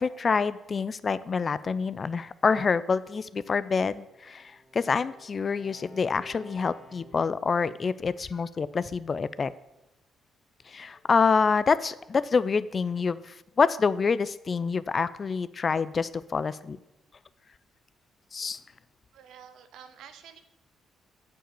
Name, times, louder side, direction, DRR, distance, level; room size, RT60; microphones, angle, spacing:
voice 1, 0.0-9.5 10.7-16.8 18.3-18.6, left 5 dB, 40° left, 17 dB, 0.4 m, -27 dB
Bowed string instrument, 3.8-7.4, equal, 15° left, 1.7 m, -51 dB
voice 2, 19.1-20.4, right 8 dB, 80° right, 9 dB, 0.9 m, -49 dB
9.0 x 4.9 x 7.0 m, 0.93 s
cardioid pair, 90°, 0 cm